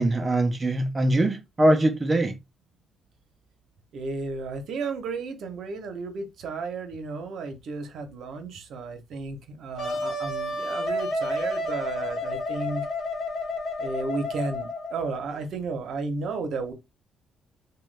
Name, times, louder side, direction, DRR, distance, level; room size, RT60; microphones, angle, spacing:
voice 1, 0.0-2.3, right 1 dB, 25° right, 0.5 m, -22 dB
voice 2, 3.9-12.9 13.8-16.7, right 4 dB, 70° right, 0.7 m, -33 dB
Wind instrument woodwind instrument, 9.8-15.3, left 1 dB, 65° left, 0.9 m, -30 dB
3.0 x 2.2 x 3.2 m
cardioid pair, 90°, 0 cm